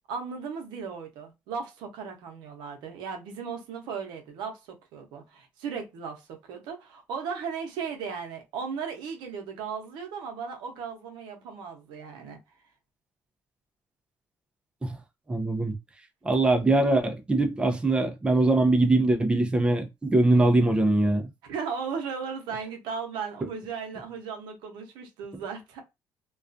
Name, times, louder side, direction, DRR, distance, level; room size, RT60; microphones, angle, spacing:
voice 1, 0.1-12.4 20.3-20.4 21.4-25.8, right 6 dB, 90° right, 0.7 m, -36 dB
voice 2, 15.3-15.7 16.2-21.3, right 2 dB, 15° right, 0.5 m, -22 dB
2.3 x 2.3 x 2.5 m
cardioid pair, 95°, 7 cm